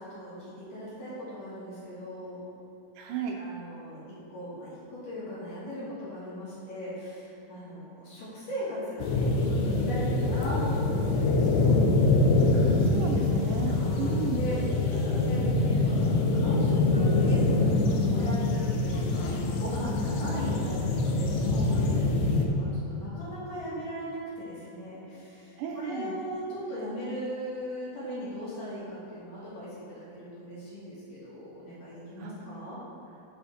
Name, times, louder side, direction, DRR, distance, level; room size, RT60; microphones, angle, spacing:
voice 1, 0.0-2.4 3.4-11.8 13.7-14.6 14.9-32.8, equal, 70° left, -10 dB, 3.0 m, -39 dB
voice 2, 3.0-3.4 12.5-14.5 25.6-26.1 32.2-32.3, right 6 dB, 80° right, 1 dB, 2.1 m, -34 dB
sound 1, 9.0-22.5, left 2 dB, 85° left, 2.5 m, -25 dB
6.2 x 5.9 x 4.2 m, 3.0 s
omnidirectional pair, 4.0 m